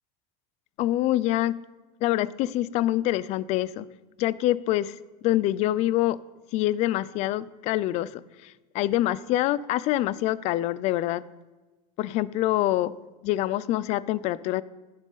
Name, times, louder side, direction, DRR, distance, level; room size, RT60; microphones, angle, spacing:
voice 1, 0.8-1.6 2.0-3.9 4.2-5.0 5.2-6.2 6.5-11.2 12.0-12.9 13.2-14.6, left 14 dB, 40° left, 17 dB, 0.4 m, -25 dB
19.0 x 6.4 x 4.0 m, 1.2 s
supercardioid pair, 160°, 18 cm